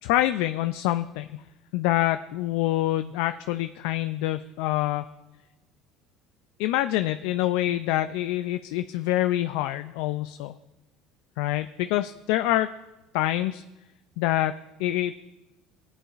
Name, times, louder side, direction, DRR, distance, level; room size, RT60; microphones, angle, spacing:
voice 1, 0.0-1.4 1.7-5.0 6.6-10.5 11.4-12.7 13.1-13.6 14.2-15.2, left 14 dB, 80° left, 10 dB, 0.3 m, -26 dB
18.0 x 8.6 x 2.5 m, 1.0 s
supercardioid pair, 90°, 0 cm